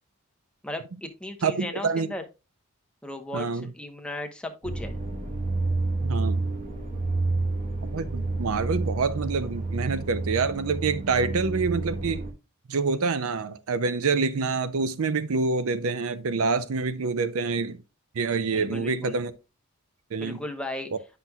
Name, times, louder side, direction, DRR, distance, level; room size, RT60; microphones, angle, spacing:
voice 1, 0.6-2.2 3.0-5.0 18.5-19.2 20.2-20.9, left 1 dB, 5° left, 0.9 m, -36 dB
voice 2, 1.4-2.1 3.3-3.7 6.0-6.4 7.9-12.2 12.7-17.8 18.2-19.3 20.1-20.4, right 4 dB, 65° right, 0.6 m, -26 dB
sound 1, 4.6-12.3, right 2 dB, 35° right, 1.2 m, -29 dB
9.3 x 5.8 x 2.3 m
head